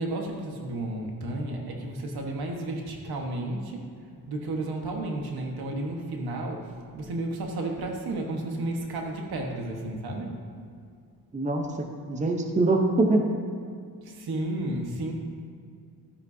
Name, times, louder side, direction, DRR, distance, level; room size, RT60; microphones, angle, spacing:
voice 1, 0.0-3.8 4.3-10.4 14.0-15.1, right 2 dB, 80° right, 1 dB, 1.4 m, -32 dB
voice 2, 11.3-13.2, right 2 dB, 20° right, 3 dB, 0.8 m, -24 dB
12.5 x 9.9 x 2.8 m, 2.3 s
cardioid pair, 125°, 37 cm